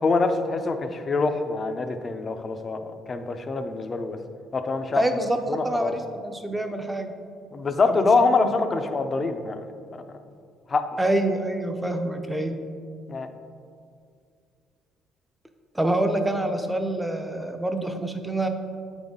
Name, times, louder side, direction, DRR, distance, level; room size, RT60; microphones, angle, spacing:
voice 1, 0.0-4.2 4.5-5.0 5.5-5.9 7.5-10.2 10.7-10.9 13.1-13.3, left 3 dB, 35° left, 8 dB, 0.5 m, -25 dB
voice 2, 4.9-5.4 5.6-7.1 7.9-8.5 11.0-12.6 15.7-18.5, right 1 dB, 10° right, 6 dB, 0.6 m, -26 dB
8.3 x 3.9 x 3.7 m, 2.3 s
supercardioid pair, 85°, 0 cm